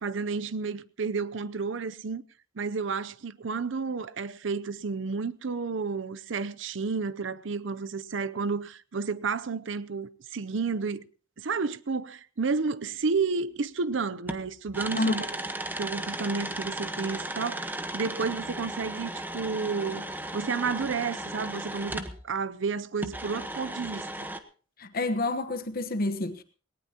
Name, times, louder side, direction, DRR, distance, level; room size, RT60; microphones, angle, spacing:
voice 1, 0.0-2.2 2.6-11.1 11.4-15.3 15.8-20.1 20.3-24.3, right 4 dB, 65° right, 0.6 m, -31 dB
sound 1, 13.8-13.9 14.3-22.2 23.0-24.4, right 1 dB, 10° right, 1.1 m, -36 dB
voice 2, 24.8-26.4, left 2 dB, 50° left, 1.1 m, -28 dB
19.0 x 18.5 x 2.9 m
head